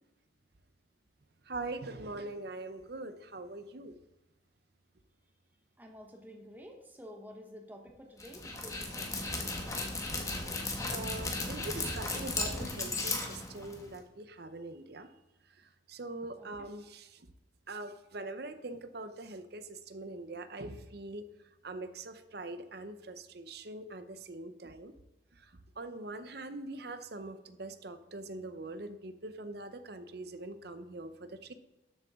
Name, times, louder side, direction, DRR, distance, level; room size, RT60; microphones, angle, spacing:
voice 1, 1.5-4.0 10.9-15.1 15.6-17.3 17.7-21.3 21.6-24.9 25.4-31.5, right 2 dB, 55° right, 10 dB, 0.8 m, -43 dB
voice 2, 5.8-9.3 16.4-16.7, equal, 10° right, 2 dB, 1.1 m, -50 dB
Dog, 8.2-14.0, left 2 dB, 15° left, 1.2 m, -36 dB
12.5 x 7.8 x 3.7 m, 0.95 s
head